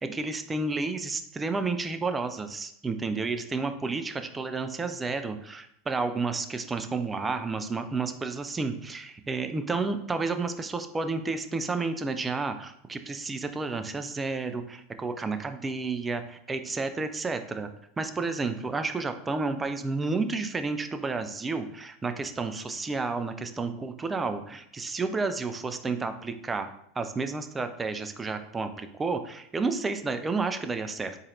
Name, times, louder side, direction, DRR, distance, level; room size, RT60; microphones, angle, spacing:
voice 1, 0.0-17.7 18.0-26.7 27.0-31.2, right 3 dB, 20° right, 8 dB, 0.3 m, -31 dB
4.0 x 3.0 x 2.7 m, 0.72 s
hypercardioid pair, 85°, 0 cm